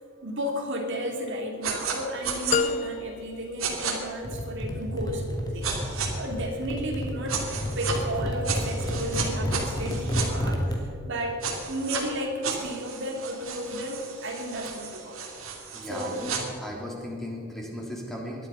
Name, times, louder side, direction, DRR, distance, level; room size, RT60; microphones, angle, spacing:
voice 1, 0.2-7.5 7.8-15.2 15.8-16.2, equal, 60° right, 1 dB, 2.6 m, -33 dB
sound 1, 1.6-2.0 2.2-2.6 3.6-3.9 5.6-6.1 7.3-8.0 8.4-10.3 11.4-12.0 12.4-16.4, right 6 dB, 80° right, 2.8 m, -33 dB
sound 2, 2.5-4.6, left 4 dB, 35° left, 0.5 m, -30 dB
sound 3, 4.2-10.8, equal, 20° left, 2.2 m, -30 dB
voice 2, 15.7-18.5, equal, ahead, -2 dB, 3.3 m, -36 dB
20.5 x 12.0 x 5.6 m, 2.6 s
head